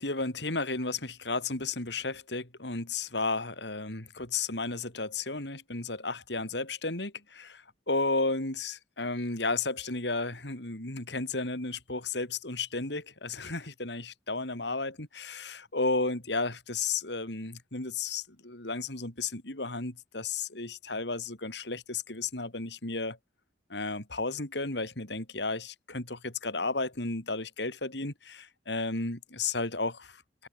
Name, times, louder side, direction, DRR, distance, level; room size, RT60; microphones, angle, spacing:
voice 1, 0.0-23.2 23.7-30.5, left 3 dB, 65° left, 3.9 m, -33 dB
head